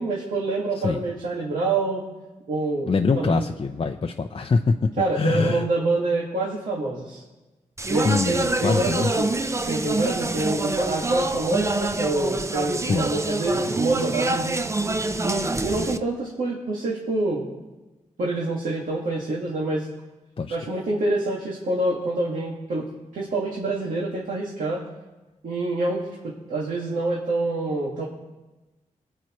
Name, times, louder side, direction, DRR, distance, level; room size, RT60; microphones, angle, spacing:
voice 1, 0.0-2.0 2.5-2.9 3.2-3.4 5.0-7.2 7.9-9.3 9.6-14.6 15.2-17.4 18.2-19.9 20.5-22.8 23.1-24.8 25.4-26.1 26.5-28.0, right 2 dB, 80° right, -5 dB, 2.0 m, -26 dB
voice 2, 2.9-4.8 5.2-5.7 8.0-9.1 12.8-13.1 20.4-20.6, left 4 dB, 40° left, 4 dB, 0.6 m, -24 dB
Speech, 7.8-16.0, right 2 dB, 20° right, 0.6 m, -26 dB
22.5 x 8.4 x 3.1 m, 1.1 s
cardioid pair, 70°, 14 cm